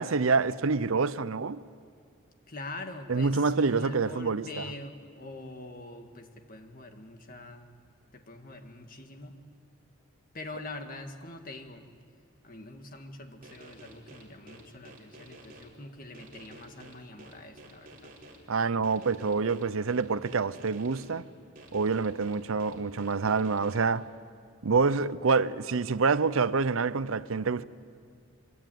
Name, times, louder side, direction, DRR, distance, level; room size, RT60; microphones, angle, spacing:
voice 1, 0.0-1.6 3.1-4.7 18.5-21.3 21.7-24.1 24.6-27.6, right 4 dB, 70° right, 0.6 m, -27 dB
voice 2, 2.5-7.8 8.1-9.4 10.3-11.9 12.4-18.1, left 2 dB, 40° left, 1.9 m, -44 dB
sound 1, 13.4-15.6 16.1-18.4 18.8-21.1 21.6-23.8, right 2 dB, 40° right, 4.1 m, -50 dB
23.5 x 23.0 x 9.3 m
head